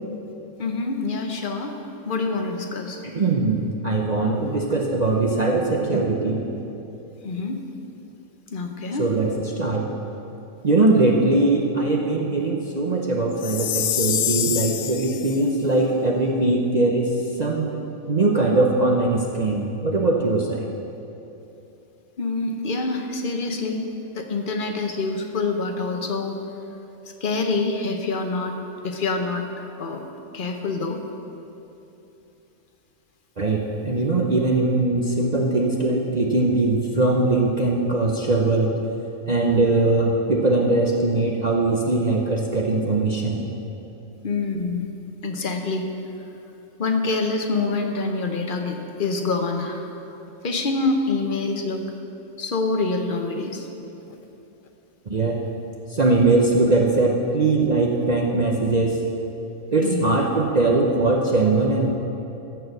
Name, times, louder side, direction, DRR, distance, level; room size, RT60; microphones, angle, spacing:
voice 1, 0.6-1.7 2.1-3.0 7.2-7.6 8.5-9.0 22.2-23.9 24.1-26.4 27.2-28.6 28.8-29.4 29.8-30.0 30.3-31.0 44.2-44.8 45.2-45.9 46.8-50.1 50.4-51.8 52.4-53.7 59.8-60.2, left 3 dB, 45° left, 4 dB, 0.9 m, -26 dB
voice 2, 3.0-6.4 9.0-9.9 10.6-17.1 17.4-17.7 18.1-20.7 33.4-38.7 39.3-43.4 55.1-55.4 55.9-59.0 59.7-61.9, right 2 dB, 40° right, -1 dB, 0.7 m, -21 dB
Chime, 13.4-15.4, left 11 dB, 75° left, 1.0 m, -26 dB
14.0 x 4.7 x 6.5 m, 2.9 s
omnidirectional pair, 1.5 m